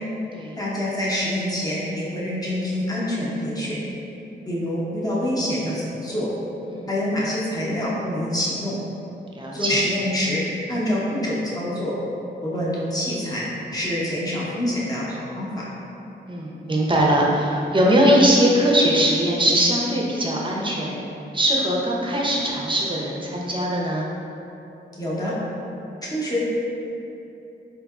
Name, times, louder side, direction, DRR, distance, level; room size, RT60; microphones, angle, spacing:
voice 1, 0.6-3.8 4.5-6.3 6.9-8.8 9.5-10.4 10.7-12.0 12.4-13.5 13.7-15.6 25.0-25.3 26.0-26.5, left 1 dB, 20° left, -7 dB, 0.9 m, -26 dB
voice 2, 9.3-9.8 16.3-21.0 21.3-24.1, equal, 25° right, -3 dB, 0.6 m, -21 dB
3.8 x 2.8 x 2.3 m, 2.9 s
cardioid pair, 70°, 19 cm